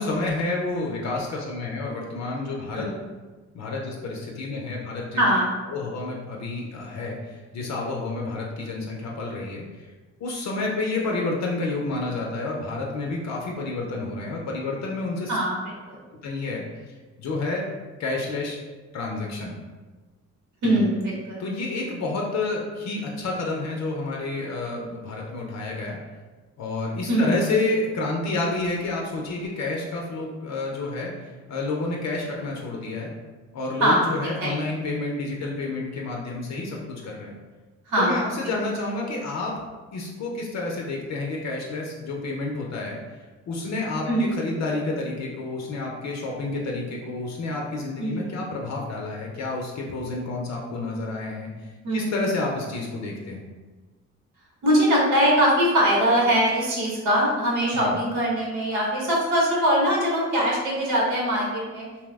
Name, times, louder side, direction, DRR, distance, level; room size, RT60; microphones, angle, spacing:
voice 1, 0.0-2.8 3.5-5.2 5.7-9.9 10.2-15.4 16.2-16.6 17.2-17.7 18.0-18.6 18.9-19.5 20.6-20.8 21.4-26.0 26.6-33.1 33.5-37.3 38.0-39.5 39.9-43.0 43.5-51.5 51.9-53.4 57.7-58.0, left 3 dB, 65° left, -1 dB, 0.6 m, -29 dB
voice 2, 5.1-5.5 15.3-15.6 15.9-16.0 20.6-21.4 27.1-27.4 33.8-34.5 37.9-38.3 44.0-44.4 48.0-48.3 51.8-52.1 54.6-61.9, equal, 80° right, -4 dB, 1.0 m, -22 dB
2.8 x 2.0 x 3.3 m, 1.3 s
cardioid pair, 90°, 30 cm